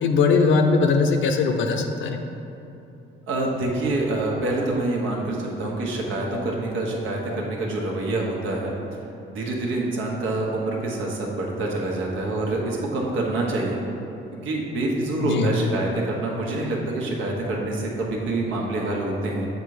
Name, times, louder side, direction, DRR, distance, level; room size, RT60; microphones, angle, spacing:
voice 1, 0.0-2.2 15.2-15.5, left 4 dB, 75° left, 5 dB, 0.7 m, -20 dB
voice 2, 3.3-8.7 9.3-13.8 14.4-19.5, right 2 dB, 80° right, -2 dB, 1.3 m, -26 dB
7.3 x 4.1 x 4.9 m, 2.9 s
cardioid pair, 90°, 20 cm